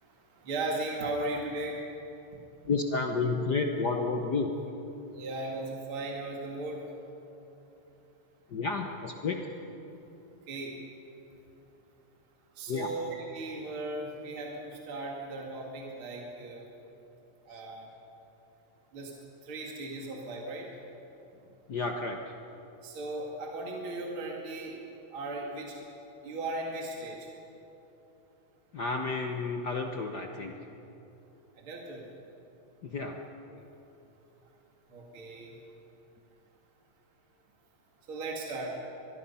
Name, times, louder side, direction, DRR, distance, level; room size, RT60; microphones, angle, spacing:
voice 1, 0.4-1.8 5.1-6.8 10.5-10.8 12.6-16.6 17.5-17.9 18.9-19.1 19.4-20.7 22.8-24.7 25.1-25.7 26.2-27.3 31.6-32.0 33.5-33.6 34.9-35.5 38.1-38.8, right 2 dB, 45° right, -1 dB, 2.9 m, -37 dB
voice 2, 2.7-4.5 8.5-9.4 12.7-12.9 17.5-17.6 21.7-22.3 28.7-30.5 32.8-33.2, left 4 dB, 70° left, 3 dB, 0.9 m, -31 dB
25.0 x 21.5 x 5.7 m, 3.0 s
omnidirectional pair, 3.4 m